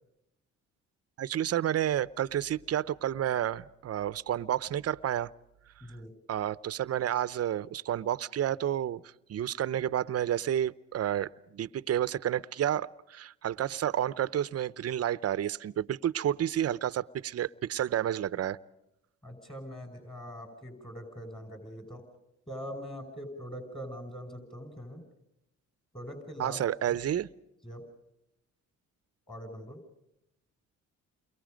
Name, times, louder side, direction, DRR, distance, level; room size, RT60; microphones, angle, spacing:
voice 1, 1.2-5.3 6.3-9.0 9.3-18.6 26.4-27.3, right 11 dB, 55° right, 17 dB, 0.8 m, -30 dB
voice 2, 5.8-6.1 19.2-22.1 22.5-25.0 25.9-26.6 26.9-27.0 27.6-27.9 29.3-29.8, equal, 15° left, 5 dB, 5.7 m, -42 dB
29.5 x 23.0 x 5.2 m, 0.85 s
cardioid pair, 90°, 30 cm